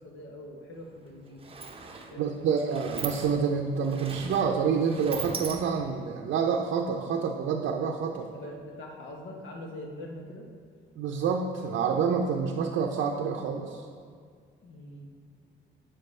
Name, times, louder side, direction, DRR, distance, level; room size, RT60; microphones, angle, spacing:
voice 1, 0.0-1.5 2.1-2.8 8.3-10.5 14.6-15.1, left 1 dB, 75° left, 1 dB, 1.1 m, -43 dB
Sliding door, 0.7-0.9 1.1-6.1, right 4 dB, 30° right, 0.7 m, -40 dB
voice 2, 2.2-8.3 11.0-13.8, right 6 dB, 75° right, 2 dB, 0.5 m, -28 dB
7.5 x 6.6 x 3.2 m, 2.1 s
cardioid pair, 90°, 20 cm